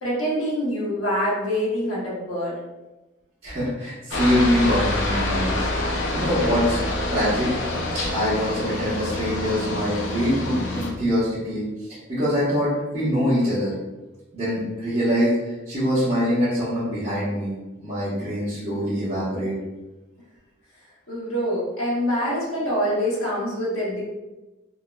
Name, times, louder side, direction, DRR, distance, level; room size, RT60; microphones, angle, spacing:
voice 1, 0.0-2.6 5.9-6.0 21.1-24.0, equal, 85° left, -6 dB, 1.3 m, -25 dB
voice 2, 3.4-5.7 6.1-6.8 7.1-7.5 8.1-11.7 12.1-13.7 14.3-19.5, equal, 30° right, -14 dB, 1.1 m, -24 dB
Aircraft, 4.1-10.9, left 2 dB, 65° left, 0.6 m, -26 dB
3.7 x 2.8 x 2.3 m, 1.1 s
head